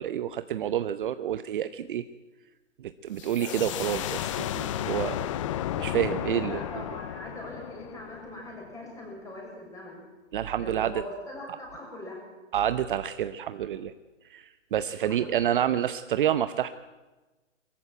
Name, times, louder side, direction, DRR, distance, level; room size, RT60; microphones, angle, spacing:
voice 1, 0.0-2.0 2.8-5.4 5.8-6.6 10.3-11.0 12.5-13.9 14.3-16.7, right 10 dB, 45° right, 12 dB, 0.8 m, -28 dB
sound 1, 3.2-8.7, left 12 dB, 25° left, 0.6 m, -33 dB
voice 2, 6.4-10.0 10.6-12.2 15.1-15.3, left 1 dB, 10° left, -2 dB, 7.0 m, -41 dB
22.5 x 14.5 x 9.2 m, 1.2 s
hypercardioid pair, 145°, 37 cm